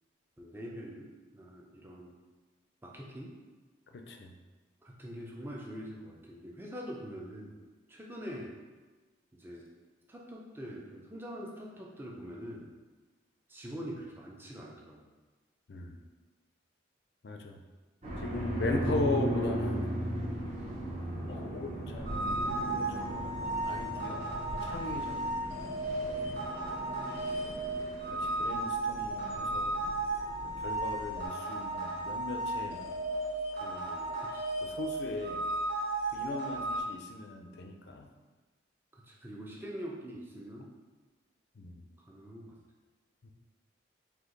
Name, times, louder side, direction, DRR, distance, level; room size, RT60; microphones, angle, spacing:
voice 1, 0.4-1.1 1.3-2.2 2.8-3.3 4.8-7.6 7.9-8.5 9.3-9.7 10.1-12.7 13.5-15.0 34.2-34.4 38.9-40.7 42.1-42.6, equal, 10° right, -2 dB, 0.5 m, -44 dB
voice 2, 3.9-4.3 15.7-16.0 17.2-17.6 18.2-19.9 21.3-22.3 22.9-26.5 27.6-29.9 30.4-32.8 33.6-34.2 34.6-35.5 36.1-38.1 41.6-41.8 43.2-43.3, left 2 dB, 60° left, 4 dB, 0.4 m, -39 dB
sound 1, 18.0-31.2, equal, 35° right, 0.9 m, -37 dB
sound 2, 22.0-36.8, right 2 dB, 55° right, 1.2 m, -35 dB
4.4 x 2.8 x 3.9 m, 1.3 s
head